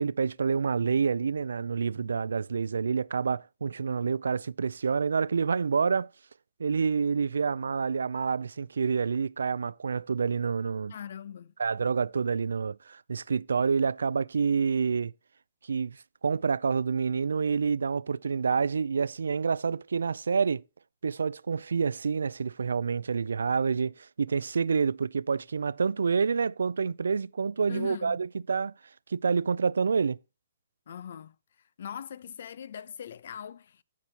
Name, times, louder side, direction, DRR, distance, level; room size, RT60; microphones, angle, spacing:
voice 1, 0.0-6.1 6.6-11.0 11.6-15.1 15.7-16.0 16.2-20.6 21.0-28.7 29.1-30.2, right 5 dB, 90° right, 0.4 m, -28 dB
voice 2, 10.9-11.5 27.7-28.2 30.9-31.3 31.8-33.8, left 8 dB, 65° left, 0.7 m, -41 dB
15.5 x 6.0 x 2.9 m
hypercardioid pair, 155°, 0 cm